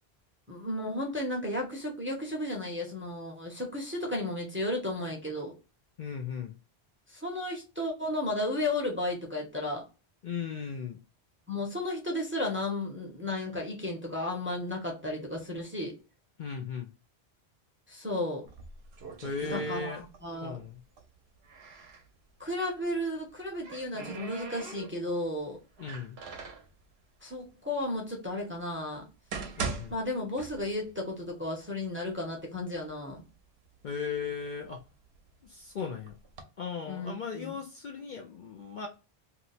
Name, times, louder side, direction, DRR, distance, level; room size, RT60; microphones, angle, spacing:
voice 1, 0.5-5.5 7.1-9.8 11.5-15.9 17.9-18.4 19.4-20.0 20.2-20.6 22.4-25.6 27.2-29.0 29.9-33.2 36.9-37.6, left 1 dB, 15° right, 0.6 m, -33 dB
voice 2, 6.0-6.6 10.2-11.0 16.4-16.9 19.2-20.0 20.4-20.8 25.8-26.2 29.6-29.9 33.8-34.8 35.4-36.1 36.6-38.9, left 5 dB, 60° left, 0.6 m, -37 dB
sound 1, 18.5-20.4 20.6-22.1 23.2-25.2 25.8-26.7 27.5-27.6 28.2-28.3 29.0-31.0 31.3-31.4 32.1-32.2 32.6-33.2 33.8-35.4 36.1-36.4, right 4 dB, 75° right, 0.9 m, -41 dB
2.7 x 2.0 x 3.9 m
omnidirectional pair, 1.1 m